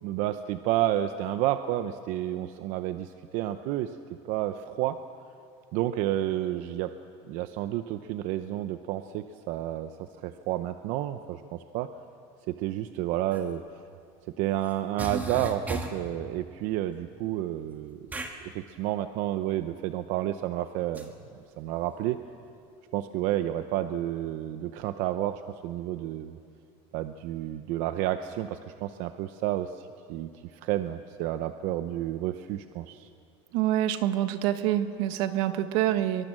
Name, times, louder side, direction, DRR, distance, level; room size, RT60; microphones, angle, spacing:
voice 1, 0.0-3.9 4.3-5.0 5.7-6.9 7.3-9.9 10.2-11.9 12.5-13.6 14.4-18.0 18.4-21.1 21.6-22.2 22.9-26.4 26.9-33.1, right 13 dB, 60° right, 9 dB, 0.8 m, -30 dB
sound 1, 13.3-13.4 14.6-14.7 15.0-16.1 18.1-18.4 20.9-21.1, right 2 dB, 10° right, 1.6 m, -34 dB
voice 2, 33.5-36.3, right 12 dB, 75° right, 10 dB, 1.4 m, -26 dB
23.5 x 23.5 x 7.5 m, 2.4 s
cardioid pair, 175°, 14 cm